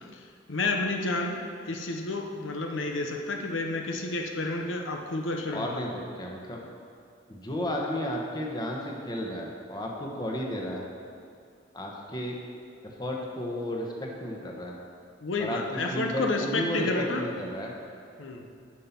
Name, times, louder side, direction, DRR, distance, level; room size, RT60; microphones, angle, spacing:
voice 1, 0.5-1.4 1.6-5.7 15.2-17.2 18.2-18.4, left 2 dB, 80° left, 3 dB, 0.9 m, -30 dB
voice 2, 5.5-6.6 7.3-10.8 11.7-12.4 12.8-14.7 15.4-17.7, equal, 20° left, -1 dB, 1.1 m, -33 dB
11.0 x 5.6 x 5.9 m, 2.4 s
head